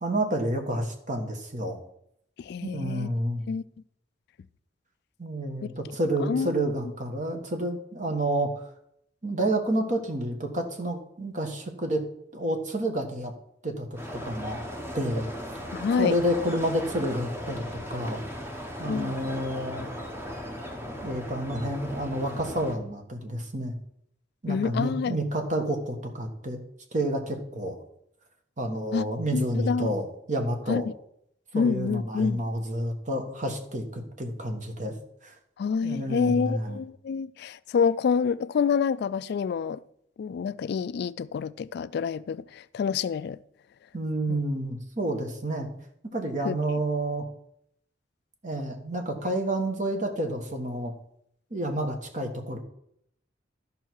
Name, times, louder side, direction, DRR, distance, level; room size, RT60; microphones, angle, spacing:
voice 1, 0.0-1.8 2.6-3.5 5.2-8.6 9.2-12.0 12.3-13.3 13.6-14.0 14.2-14.6 14.9-15.3 16.0-17.6 17.9-18.2 18.8-19.8 21.0-23.7 24.4-26.6 26.9-27.8 28.6-30.8 31.5-34.9 35.2-35.3 35.8-36.8 43.9-45.7 46.1-47.3 48.4-50.9 51.5-52.6, right 1 dB, 45° right, 1.5 m, -29 dB
voice 2, 2.4-3.1 3.5-3.6 6.3-6.5 15.7-16.2 18.9-19.1 24.5-25.2 28.9-29.1 29.3-29.9 30.7-30.8 31.5-32.4 35.6-39.8 40.2-43.4 44.3-44.4 46.4-46.5, left 6 dB, 60° left, 0.3 m, -27 dB
sound 1, 14.0-22.8, equal, 15° right, 1.1 m, -37 dB
12.5 x 5.5 x 4.7 m
head